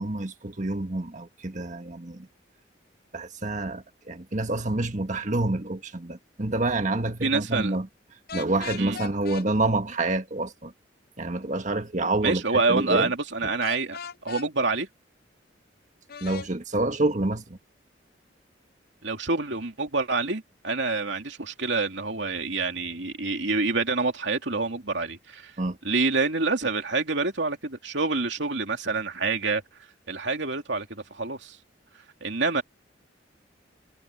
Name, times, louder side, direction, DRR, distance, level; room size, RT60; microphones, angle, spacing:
voice 1, 0.0-2.3 3.1-7.9 8.3-10.7 11.2-13.1 16.2-17.6 25.6-25.8, right 2 dB, 40° right, 1.6 m, -28 dB
voice 2, 7.2-7.8 8.8-9.0 12.2-14.0 14.2-14.9 19.0-25.5 25.8-29.6 30.1-31.6 32.2-32.6, right 3 dB, 70° right, 2.8 m, -27 dB
sound 1, 8.3-9.5 13.6-14.5 16.1-16.5, left 6 dB, 55° left, 0.6 m, -37 dB
head